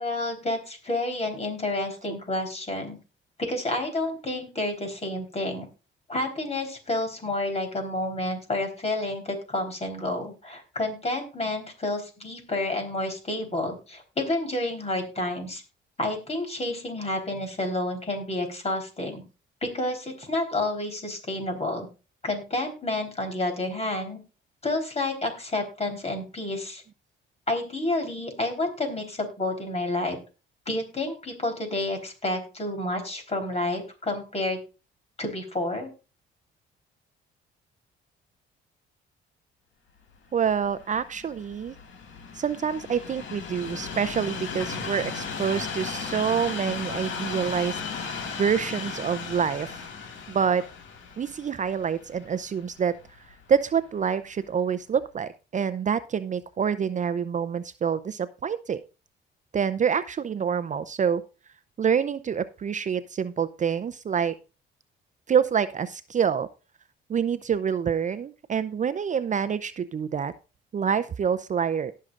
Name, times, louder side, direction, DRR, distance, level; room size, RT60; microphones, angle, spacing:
voice 1, 0.0-3.0 3.5-5.7 6.1-15.6 16.0-19.2 19.6-21.9 22.2-24.2 24.6-26.8 27.5-30.2 30.7-34.6 35.2-35.9, left 2 dB, 30° left, 4 dB, 3.8 m, -29 dB
Train, 40.3-53.5 54.2-54.3, left 5 dB, 75° left, 2.1 m, -36 dB
voice 2, 40.3-41.7 42.3-48.1 48.4-49.8 50.3-50.7 51.2-52.9 53.5-58.8 59.5-61.2 61.8-64.3 65.3-66.5 67.1-70.3 70.7-71.9, right 7 dB, 40° right, 13 dB, 0.5 m, -27 dB
18.5 x 6.5 x 2.5 m, 0.32 s
cardioid pair, 90°, 20 cm